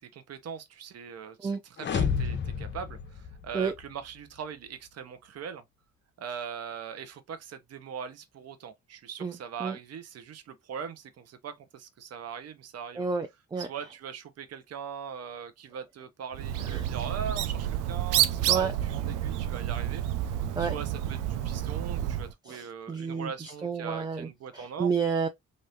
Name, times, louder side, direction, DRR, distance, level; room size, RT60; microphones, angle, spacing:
voice 1, 0.1-5.6 6.2-13.0 13.6-20.3 20.6-24.9, right 7 dB, 55° right, 0.8 m, -41 dB
sound 1, 1.8-3.9, left 6 dB, 40° left, 0.7 m, -31 dB
voice 2, 9.2-9.8 13.0-13.7 16.6-16.9 18.5-18.7 20.6-20.7 22.5-25.3, right 5 dB, 15° right, 0.4 m, -31 dB
Bird, 16.3-22.3, right 12 dB, 90° right, 0.5 m, -29 dB
3.4 x 2.6 x 2.7 m
cardioid pair, 90°, 30 cm